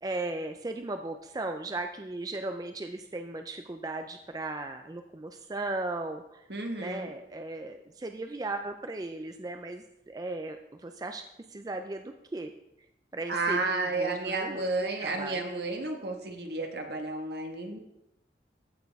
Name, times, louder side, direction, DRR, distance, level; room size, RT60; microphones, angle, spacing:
voice 1, 0.0-6.4 6.8-11.2 11.5-12.5 13.1-15.4, right 2 dB, 20° right, 6 dB, 0.4 m, -37 dB
voice 2, 6.5-7.1 13.3-17.8, right 3 dB, 70° right, 2 dB, 1.5 m, -32 dB
14.5 x 6.1 x 3.5 m, 0.87 s
head